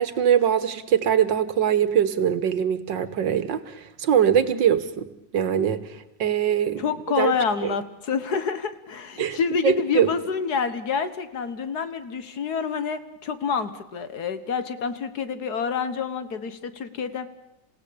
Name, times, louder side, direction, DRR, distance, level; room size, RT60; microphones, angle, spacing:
voice 1, 0.0-5.8 6.2-7.3 7.6-7.7 9.2-9.4 9.6-10.1, right 9 dB, 90° right, 13 dB, 2.0 m, -22 dB
voice 2, 6.8-17.3, left 5 dB, 60° left, 12 dB, 1.8 m, -27 dB
28.0 x 17.0 x 8.7 m, 0.91 s
omnidirectional pair, 1.9 m